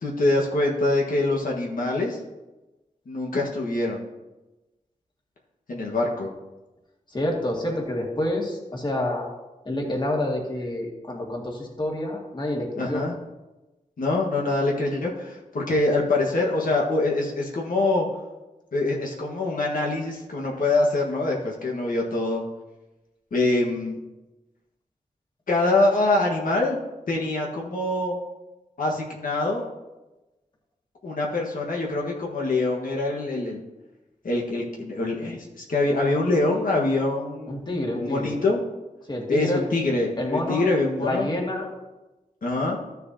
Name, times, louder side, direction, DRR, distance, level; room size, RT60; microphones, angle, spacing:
voice 1, 0.0-2.2 3.1-4.0 5.7-6.3 12.8-13.1 14.0-18.1 18.7-22.4 23.3-24.0 25.5-26.8 27.1-28.2 28.8-29.7 31.0-33.6 34.2-37.7 37.9-38.6 39.3-41.3 42.4-42.8, left 2 dB, 80° left, -2 dB, 1.4 m, -24 dB
voice 2, 7.1-9.3 9.7-13.0 37.5-38.4 39.1-39.6 40.2-40.7 41.0-41.7, left 1 dB, 35° left, -1 dB, 2.0 m, -28 dB
14.0 x 6.6 x 2.8 m, 1.1 s
wide cardioid pair, 90°, 14 cm